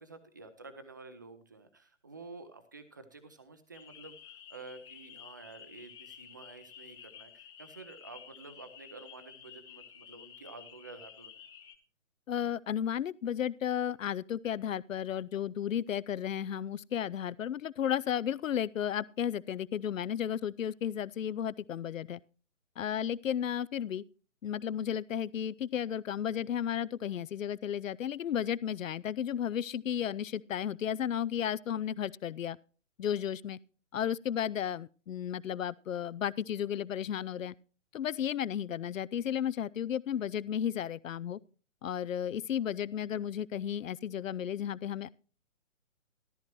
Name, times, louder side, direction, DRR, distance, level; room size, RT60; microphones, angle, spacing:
voice 1, 0.0-11.4, right 3 dB, 15° right, 0.4 m, -50 dB
sound 1, 3.7-11.7, left 9 dB, 40° left, 2.4 m, -52 dB
voice 2, 12.3-22.2 22.8-24.0 24.4-32.6 33.0-33.6 33.9-37.5 37.9-41.4 41.8-45.1, left 9 dB, 75° left, 0.5 m, -33 dB
13.5 x 13.0 x 3.0 m
figure-of-eight pair, 145°, 39 cm